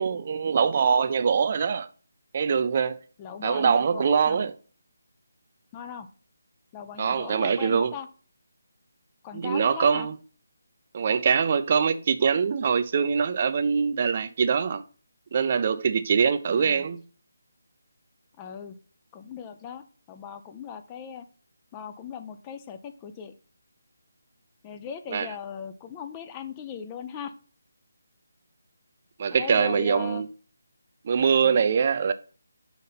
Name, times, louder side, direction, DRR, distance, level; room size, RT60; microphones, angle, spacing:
voice 1, 0.0-1.9 2.3-3.0 3.4-4.5 7.0-7.9 9.3-10.2 10.9-14.8 15.3-17.0 25.1-25.3 29.2-30.3 31.0-32.1, right 6 dB, 40° right, 0.4 m, -23 dB
voice 2, 3.2-4.4 5.7-6.1 6.7-8.1 9.2-10.1 16.5-16.9 18.4-18.8 19.1-21.3 21.7-23.3 24.6-27.3 29.3-30.3 31.4-31.5, left 7 dB, 15° left, 0.5 m, -39 dB
5.7 x 4.1 x 5.6 m
figure-of-eight pair, 165°, 0 cm